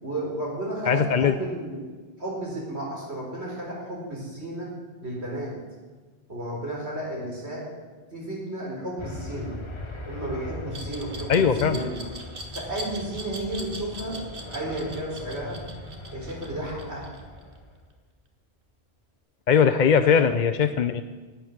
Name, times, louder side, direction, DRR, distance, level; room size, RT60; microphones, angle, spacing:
voice 1, 0.0-1.8 2.2-4.7 5.0-5.6 6.3-7.7 8.1-9.5 10.1-12.0 12.5-14.2 14.5-15.6 16.1-17.1 20.0-20.2, right 1 dB, 80° right, -3 dB, 4.8 m, -33 dB
voice 2, 0.9-1.3 11.3-11.8 19.5-21.0, left 7 dB, 50° left, 8 dB, 0.7 m, -20 dB
sound 1, 9.0-17.7, left 1 dB, 30° left, 1.2 m, -39 dB
Glass, 10.7-17.6, right 2 dB, 55° right, 1.8 m, -40 dB
12.0 x 8.4 x 9.5 m, 1.4 s
omnidirectional pair, 1.1 m